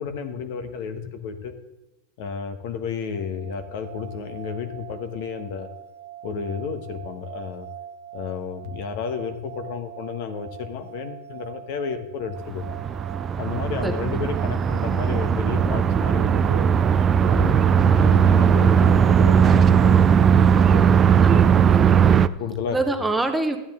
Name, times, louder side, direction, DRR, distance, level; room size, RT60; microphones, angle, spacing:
voice 1, 0.0-1.5 2.2-5.7 6.2-7.7 8.1-12.8 13.4-16.7 17.2-21.4 22.2-22.8, left 6 dB, 65° left, 8 dB, 1.2 m, -32 dB
sound 1, 3.1-20.9, right 9 dB, 80° right, 0.7 m, -42 dB
sound 2, 12.5-22.3, right 7 dB, 25° right, 0.4 m, -18 dB
voice 2, 13.8-14.2 21.2-22.2 22.7-23.6, right 3 dB, 5° right, 5 dB, 0.9 m, -26 dB
12.5 x 10.0 x 3.7 m, 0.93 s
supercardioid pair, 125°, 0 cm